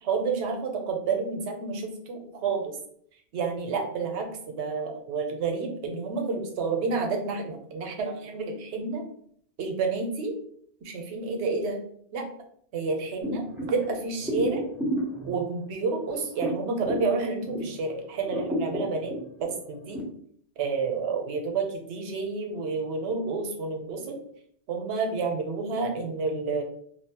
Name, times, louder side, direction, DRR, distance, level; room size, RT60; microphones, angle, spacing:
voice 1, 0.0-2.7 3.3-9.0 9.6-10.3 10.8-11.8 12.1-12.2 12.7-14.6 15.3-19.1 19.4-20.0 20.6-24.2 24.7-26.6, right 4 dB, 90° right, 3 dB, 0.9 m, -29 dB
sound 1, 13.2-17.8 18.2-20.0, equal, ahead, 0.6 m, -33 dB
2.6 x 2.0 x 2.7 m, 0.64 s
omnidirectional pair, 1.1 m